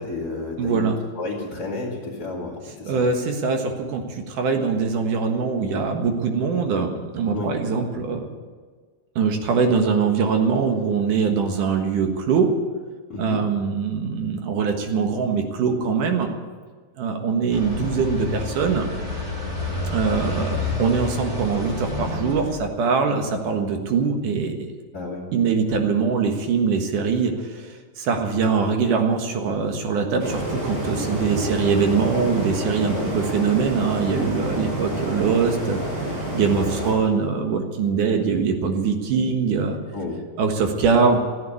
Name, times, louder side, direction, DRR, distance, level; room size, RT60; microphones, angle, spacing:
voice 1, 0.0-0.9 1.1-3.0 7.3-7.5 13.1-13.5 24.9-25.2 32.9-33.1 39.9-40.2, left 3 dB, 30° left, -7 dB, 2.7 m, -31 dB
voice 2, 0.6-1.0 2.9-8.3 9.2-12.5 13.2-16.3 17.0-18.9 19.9-24.7 25.3-35.8 36.3-39.8 40.4-41.2, right 5 dB, 70° right, 4 dB, 3.0 m, -22 dB
sound 1, 17.5-22.6, left 2 dB, 30° right, 5.8 m, -28 dB
Wind gusts in city park, 30.2-36.9, right 1 dB, 85° right, 7.5 m, -28 dB
15.0 x 9.6 x 9.7 m, 1.5 s
omnidirectional pair, 3.9 m